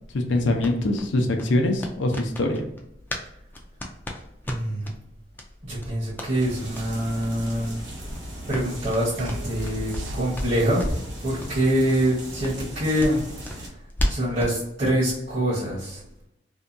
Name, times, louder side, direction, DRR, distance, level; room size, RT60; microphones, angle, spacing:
voice 1, 0.1-2.6, left 1 dB, 75° left, 4 dB, 0.5 m, -23 dB
sound 1, 0.6-3.3 3.5-4.9 5.3-5.5 5.8-6.3 6.7-6.9 7.2-7.3 7.6-7.7 8.0-10.1 10.3-11.1 11.4-11.5 11.9-12.0 12.4-14.6, equal, 10° left, 0.3 m, -32 dB
voice 2, 4.5-4.9 5.7-7.8 8.5-10.8 11.2-13.2 14.1-16.0, right 1 dB, 40° right, -9 dB, 0.9 m, -25 dB
sound 2, 6.2-13.7, right 1 dB, 70° right, 0.9 m, -38 dB
sound 3, 9.2-10.7, right 1 dB, 85° right, 0.3 m, -36 dB
2.7 x 2.2 x 2.5 m, 0.82 s
head